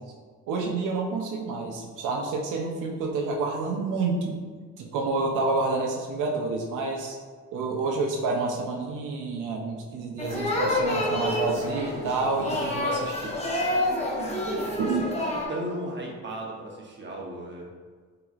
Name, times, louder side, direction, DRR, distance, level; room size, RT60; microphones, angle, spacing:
voice 1, 0.5-4.4 4.8-7.2 7.5-13.4 14.8-15.1, right 3 dB, 85° right, -1 dB, 0.7 m, -28 dB
sound 1, 10.2-15.4, left 1 dB, 20° left, 0.9 m, -28 dB
voice 2, 14.0-14.9 15.2-17.7, right 1 dB, 40° right, -2 dB, 0.9 m, -36 dB
6.0 x 3.0 x 2.4 m, 1.5 s
cardioid pair, 90°, 30 cm